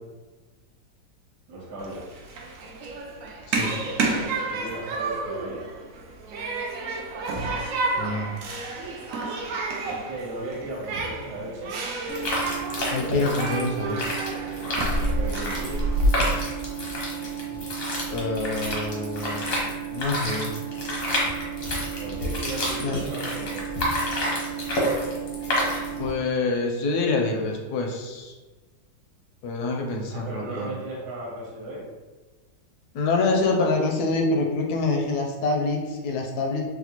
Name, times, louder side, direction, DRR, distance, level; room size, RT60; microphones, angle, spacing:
voice 1, 1.5-2.1 4.4-5.6 9.8-11.8 14.9-15.8 22.0-23.7 30.1-31.9, right 2 dB, 65° right, -4 dB, 1.4 m, -36 dB
Human group actions, 1.8-16.1, right 2 dB, 80° right, 0.7 m, -30 dB
voice 2, 8.0-8.3 12.9-14.1 18.1-20.5 22.8-23.0 26.0-28.3 29.4-30.8 32.9-36.7, left 3 dB, 70° left, 2 dB, 1.0 m, -26 dB
sound 1, 12.1-26.1, right 1 dB, 50° left, 0.7 m, -29 dB
4.1 x 2.2 x 2.8 m, 1.2 s
omnidirectional pair, 1.9 m